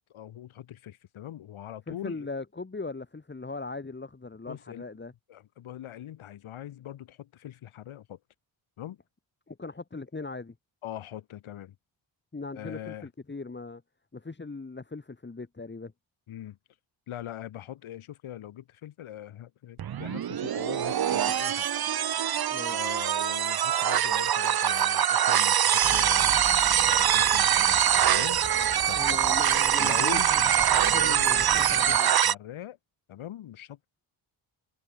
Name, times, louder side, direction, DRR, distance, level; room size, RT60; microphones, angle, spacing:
voice 1, 0.0-2.3 4.5-4.8 5.3-8.2 8.8-9.0 10.8-11.8 12.6-13.1 16.3-16.6 17.1-21.7 22.7-26.3 26.8-28.4 28.9-29.4 29.8-32.8 33.1-33.9, left 11 dB, 90° left, 7.5 m, -42 dB
voice 2, 1.9-5.1 9.5-10.5 12.3-13.8 14.1-15.9 22.5-22.8 29.0-32.1, left 3 dB, 25° left, 3.4 m, -39 dB
sound 1, 19.8-32.3, right 10 dB, 50° right, 1.1 m, -24 dB
sound 2, 25.8-32.0, right 6 dB, 30° right, 1.0 m, -40 dB
cardioid pair, 105°, 47 cm